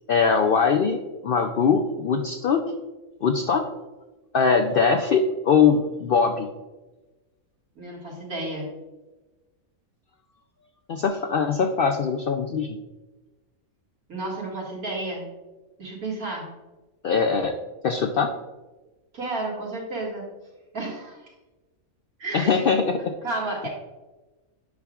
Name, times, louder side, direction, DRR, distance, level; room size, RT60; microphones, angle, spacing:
voice 1, 0.1-2.6 3.2-3.7 4.3-6.5 10.9-12.8 17.0-17.6 17.8-18.3 22.3-23.1, left 5 dB, 70° left, 4 dB, 0.5 m, -22 dB
voice 2, 7.8-8.7 14.1-15.3 15.8-16.5 19.1-20.2 20.7-21.3 22.2-22.7 23.2-23.7, right 2 dB, 90° right, -4 dB, 2.5 m, -31 dB
8.5 x 5.7 x 2.4 m, 1.1 s
omnidirectional pair, 1.5 m